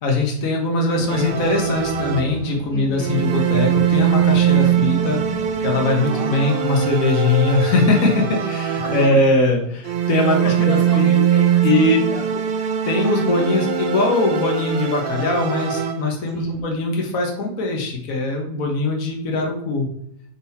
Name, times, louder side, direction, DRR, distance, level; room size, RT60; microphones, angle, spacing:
voice 1, 0.0-5.2 5.6-11.2 11.6-12.0 12.8-19.9, left 2 dB, 55° left, 0 dB, 1.7 m, -21 dB
sound 1, 0.9-5.9, left 4 dB, 90° left, 1.8 m, -37 dB
sound 2, 1.1-2.6 3.0-9.4 9.8-16.3, right 9 dB, 60° right, 0.5 m, -21 dB
voice 2, 2.7-3.3 6.1-6.8 8.8-8.9 10.4-12.6 16.3-16.6, left 3 dB, 35° left, -3 dB, 1.9 m, -35 dB
5.8 x 4.1 x 4.1 m, 0.70 s
omnidirectional pair, 1.8 m